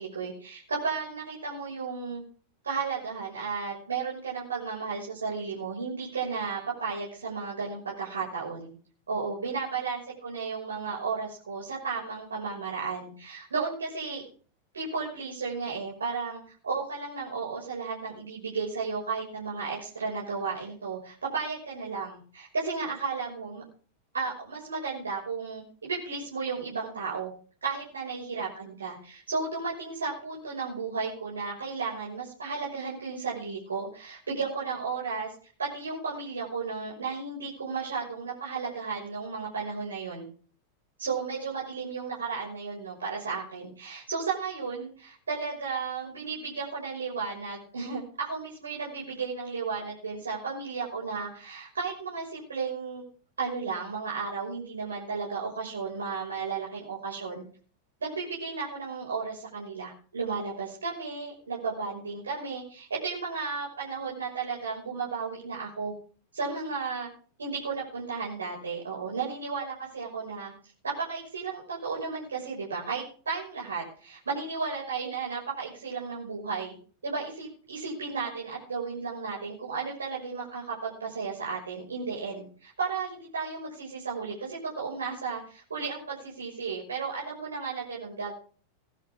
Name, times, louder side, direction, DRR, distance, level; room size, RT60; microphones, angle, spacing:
voice 1, 0.0-2.2 2.6-8.7 9.1-14.2 14.7-23.6 24.1-27.3 27.6-35.3 35.6-40.3 41.0-53.0 53.4-57.4 58.0-65.9 66.3-67.1 67.4-70.5 70.8-76.7 77.0-88.3, right 5 dB, 70° right, -4 dB, 6.0 m, -34 dB
20.0 x 13.0 x 3.7 m, 0.43 s
figure-of-eight pair, 90°, 0 cm